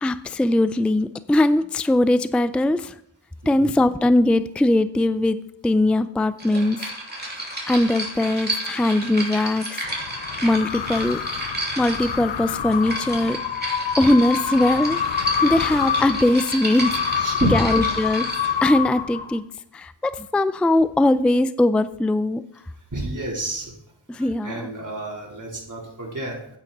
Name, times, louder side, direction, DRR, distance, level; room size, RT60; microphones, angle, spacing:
voice 1, 0.0-2.9 3.5-6.8 7.7-9.8 10.4-11.2 11.8-13.4 14.0-17.2 17.5-18.3 18.6-19.4 19.7-22.4 24.1-24.7, left 1 dB, 5° left, 13 dB, 0.4 m, -20 dB
voice 2, 3.4-3.8 15.2-15.8 17.1-18.0 18.4-18.6 22.9-23.7 24.1-26.4, right 1 dB, 40° right, -2 dB, 3.7 m, -30 dB
sound 1, 6.4-18.6, right 1 dB, 20° right, 3.0 m, -32 dB
sound 2, 9.8-19.6, left 8 dB, 65° left, 0.7 m, -27 dB
9.0 x 8.9 x 4.2 m, 0.70 s
cardioid pair, 55°, 47 cm